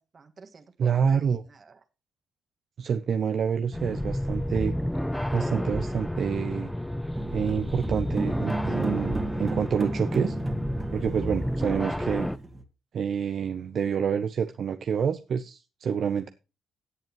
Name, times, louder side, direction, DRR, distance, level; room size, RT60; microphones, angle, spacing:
voice 1, 0.0-1.8 8.5-8.9, right 4 dB, 40° right, 1.9 m, -49 dB
voice 2, 0.8-1.4 2.8-4.7 5.3-6.7 7.3-10.4 10.9-12.3 12.9-16.3, right 7 dB, 55° right, 0.8 m, -27 dB
sound 1, 3.7-12.4, left 1 dB, 5° left, 0.6 m, -31 dB
sound 2, 7.1-12.6, right 3 dB, 25° right, 2.0 m, -35 dB
16.5 x 8.0 x 3.1 m
cardioid pair, 90°, 0 cm